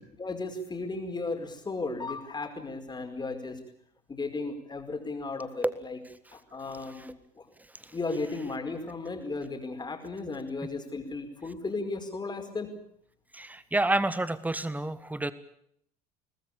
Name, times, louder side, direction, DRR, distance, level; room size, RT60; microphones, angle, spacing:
voice 1, 0.2-3.6 4.1-6.0 6.3-7.5 7.9-12.7, left 3 dB, 20° left, 5 dB, 5.1 m, -35 dB
voice 2, 13.3-15.3, right 2 dB, 10° right, 15 dB, 1.7 m, -28 dB
23.0 x 19.5 x 8.7 m, 0.68 s
figure-of-eight pair, 65°, 20 cm